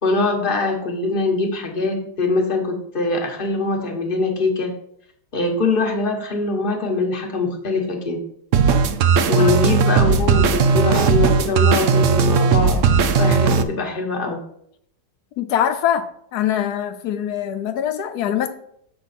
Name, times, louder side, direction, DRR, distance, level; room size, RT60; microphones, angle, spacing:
voice 1, 0.0-4.7 5.3-8.2 9.3-12.8 13.2-14.4, left 3 dB, 35° left, 2 dB, 1.4 m, -22 dB
sound 1, 8.5-13.6, right 5 dB, 65° right, 0.8 m, -17 dB
voice 2, 15.4-18.5, left 10 dB, 85° left, 7 dB, 1.2 m, -23 dB
7.1 x 5.9 x 4.2 m, 0.68 s
omnidirectional pair, 1.6 m